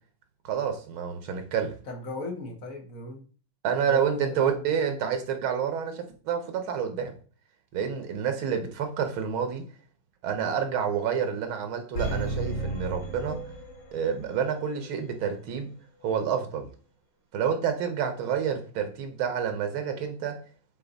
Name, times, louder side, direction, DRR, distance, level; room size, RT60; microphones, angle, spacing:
voice 1, 0.4-1.8 3.6-7.1 7.7-9.6 10.2-13.4 13.9-15.7 16.0-16.7 17.3-20.4, right 7 dB, 85° right, 6 dB, 1.9 m, -28 dB
voice 2, 1.9-3.3 3.8-4.7, left 2 dB, 45° left, 1 dB, 1.5 m, -38 dB
sound 1, 11.9-14.1 14.5-14.6, right 2 dB, 75° left, 2.4 m, -32 dB
7.6 x 3.5 x 4.0 m, 0.40 s
omnidirectional pair, 2.2 m